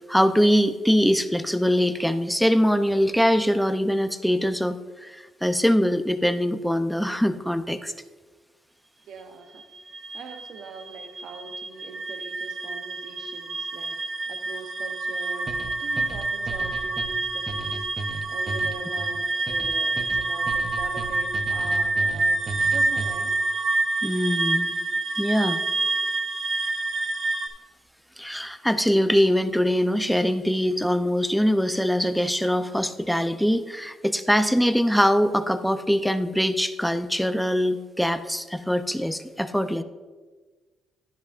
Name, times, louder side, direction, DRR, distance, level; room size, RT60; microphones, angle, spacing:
voice 1, 0.1-7.9 24.0-24.7 25.2-25.6 28.2-39.8, equal, ahead, 10 dB, 0.5 m, -23 dB
voice 2, 9.0-9.7 10.1-14.0 14.3-18.0 18.3-22.4 22.7-23.3, right 4 dB, 70° right, 6 dB, 0.8 m, -42 dB
sound 1, 9.6-27.5, right 3 dB, 55° right, 1.3 m, -27 dB
sound 2, 15.5-23.4, right 2 dB, 35° right, 0.7 m, -36 dB
10.5 x 10.5 x 2.5 m, 1.3 s
cardioid pair, 90°, 0 cm